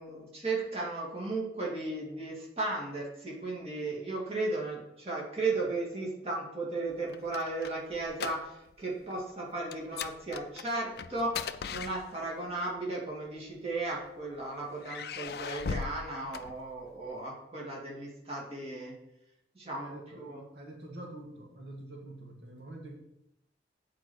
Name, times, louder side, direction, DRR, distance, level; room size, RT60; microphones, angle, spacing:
voice 1, 0.0-18.9 19.6-20.4, right 2 dB, 35° right, -4 dB, 2.3 m, -35 dB
sound 1, 6.9-8.8 9.1-9.3 9.7-12.5 13.4-14.2 14.8-17.1, left 6 dB, 60° left, 0.4 m, -39 dB
voice 2, 19.8-22.9, right 1 dB, 80° right, -1 dB, 1.7 m, -46 dB
7.9 x 4.9 x 6.3 m, 0.84 s
head